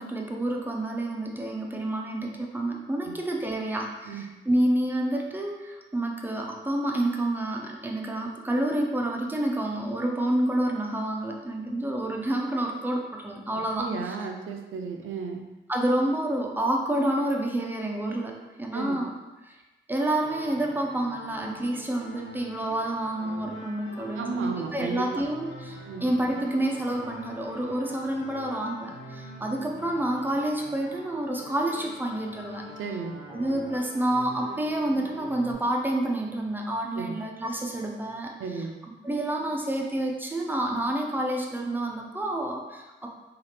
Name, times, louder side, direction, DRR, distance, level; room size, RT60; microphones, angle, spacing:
voice 1, 0.0-14.2 15.7-19.1 19.4-19.6 19.9-32.6 33.3-38.6 39.0-43.1, right 1 dB, 10° right, 0 dB, 0.4 m, -29 dB
voice 2, 13.7-15.4 18.7-19.0 24.2-25.2 25.9-26.0 32.8-33.2 37.0-37.2 38.4-38.7, right 5 dB, 80° right, 3 dB, 0.4 m, -34 dB
sound 1, 20.2-35.5, left 1 dB, 85° left, 1.1 m, -44 dB
2.8 x 2.4 x 3.2 m, 1.1 s
wide cardioid pair, 120°, 20 cm